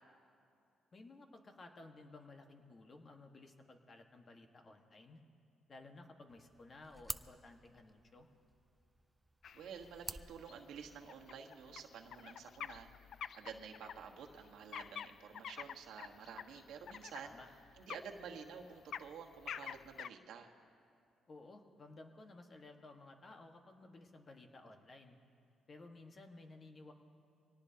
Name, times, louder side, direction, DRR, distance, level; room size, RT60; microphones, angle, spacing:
voice 1, 0.9-5.2 5.7-8.3 17.2-17.5 21.3-25.2 25.7-26.9, left 2 dB, 40° left, 4 dB, 1.4 m, -56 dB
sound 1, 6.3-11.3, right 1 dB, 10° right, 0.4 m, -51 dB
sound 2, 9.4-20.1, left 8 dB, 65° left, 0.3 m, -49 dB
voice 2, 9.5-12.9 13.3-17.3 17.8-20.5, right 7 dB, 80° right, 2 dB, 1.4 m, -50 dB
24.5 x 18.0 x 2.8 m, 2.5 s
cardioid pair, 90°, 0 cm